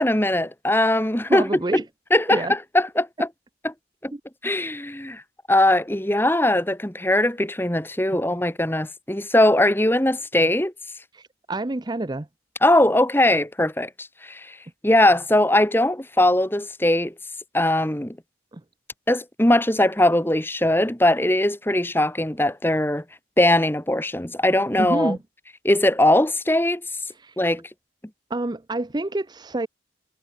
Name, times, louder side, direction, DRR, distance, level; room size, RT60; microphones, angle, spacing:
voice 1, 0.0-1.5 2.1-3.3 3.6-3.7 4.0-4.1 4.4-5.2 5.5-10.7 12.6-14.6 14.8-17.1 17.5-18.2 19.1-23.0 23.4-25.2 25.6-26.8 27.4-27.6, left 1 dB, 10° left, 1.6 m, -20 dB
voice 2, 1.3-1.8 2.3-2.5 4.1-4.2 11.1-12.3 18.5-18.6 24.8-25.2 27.2-27.3 28.3-29.7, right 2 dB, 20° right, 0.5 m, -27 dB
head